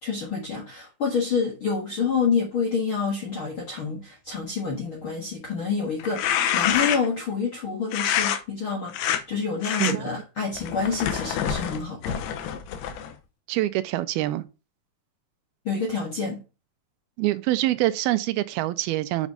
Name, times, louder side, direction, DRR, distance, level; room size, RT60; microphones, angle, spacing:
voice 1, 0.0-12.1 15.6-16.4, left 5 dB, 50° left, 1.6 m, -28 dB
sound 1, 6.0-7.2 7.9-8.4 8.9-9.2 9.6-9.9 10.6-13.1, left 9 dB, 90° left, 2.9 m, -26 dB
voice 2, 13.5-14.5 17.2-19.3, right 16 dB, 90° right, 2.5 m, -25 dB
7.3 x 5.4 x 3.9 m
omnidirectional pair, 4.4 m